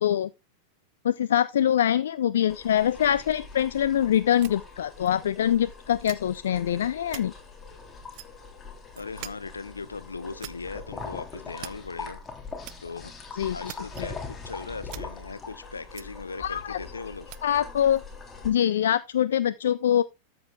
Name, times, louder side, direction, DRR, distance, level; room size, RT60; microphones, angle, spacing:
voice 1, 1.0-7.3 13.4-13.6 16.4-16.8 17.4-18.0 18.4-20.0, left 10 dB, 60° left, 0.4 m, -24 dB
sound 1, 2.5-18.5, left 4 dB, 20° left, 3.3 m, -42 dB
sound 2, 4.3-5.1 5.5-5.6 6.0-6.7 7.0-7.2 8.1-8.4 8.9-9.3 9.6-9.7 10.1-10.5 11.0-11.1 11.5-11.9 12.6-12.7 13.4-14.0 14.3-14.4 14.6-15.0 15.9-16.0 17.2-17.4 18.0-18.1, right 19 dB, 45° right, 0.6 m, -42 dB
voice 2, 9.0-12.2 12.8-13.1 13.5-17.3, left 4 dB, 75° left, 0.9 m, -39 dB
13.0 x 7.8 x 2.3 m
figure-of-eight pair, 90°, 0 cm